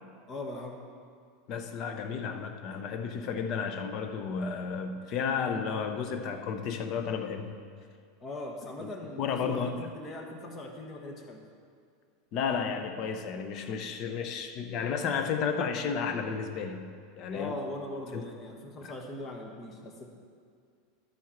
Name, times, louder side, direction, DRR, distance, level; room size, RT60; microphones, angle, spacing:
voice 1, 0.3-0.8 8.2-11.4 17.3-20.1, left 1 dB, 30° left, 1.5 m, -40 dB
voice 2, 1.5-7.6 8.8-8.9 9.2-9.9 12.3-17.5 18.1-18.2 18.8-18.9, left 6 dB, 50° left, 0.8 m, -32 dB
12.5 x 4.7 x 5.8 m
supercardioid pair, 110°, 0 cm